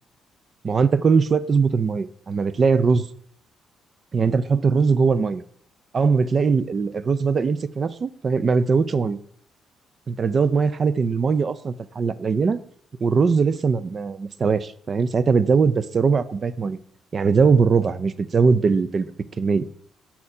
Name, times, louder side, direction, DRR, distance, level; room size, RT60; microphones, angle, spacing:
voice 1, 0.6-3.1 4.1-5.4 5.9-9.2 10.1-12.6 13.0-16.8 17.1-19.7, right 5 dB, 40° right, 15 dB, 0.4 m, -20 dB
5.7 x 4.2 x 4.8 m, 0.63 s
cardioid pair, 90°, 0 cm